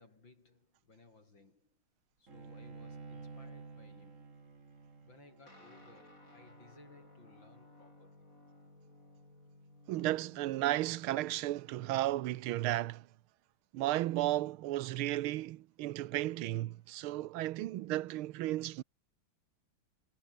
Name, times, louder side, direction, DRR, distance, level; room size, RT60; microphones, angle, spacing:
voice 1, 0.0-1.8 2.2-4.4 5.0-8.3 15.9-16.1 16.8-17.2, left 3 dB, 65° left, 5.7 m, -61 dB
Bowed string instrument, 2.3-7.6, right 4 dB, 40° right, 2.7 m, -52 dB
Guitar, 5.5-13.2, left 1 dB, 40° left, 8.6 m, -60 dB
voice 2, 9.9-13.1 13.7-18.8, right 15 dB, 85° right, 1.6 m, -34 dB
omnidirectional pair, 2.3 m